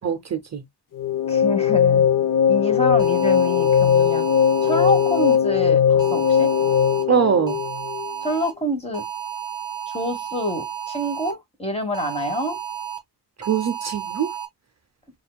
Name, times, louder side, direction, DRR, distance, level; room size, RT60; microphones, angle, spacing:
voice 1, 0.0-0.6 7.1-7.6 13.4-14.3, right 7 dB, 40° right, 0.6 m, -22 dB
sound 1, 0.9-8.2, left 8 dB, 50° left, 0.6 m, -19 dB
voice 2, 1.3-2.1 2.5-4.3 4.6-6.5 8.2-9.0 9.9-12.6, left 1 dB, 15° left, 1.1 m, -27 dB
sound 2, 3.0-5.4 6.0-7.0 7.5-8.5 8.9-11.3 11.9-13.0 13.4-14.4, right 9 dB, 10° right, 1.5 m, -32 dB
7.0 x 2.4 x 2.2 m
wide cardioid pair, 160°, 40 cm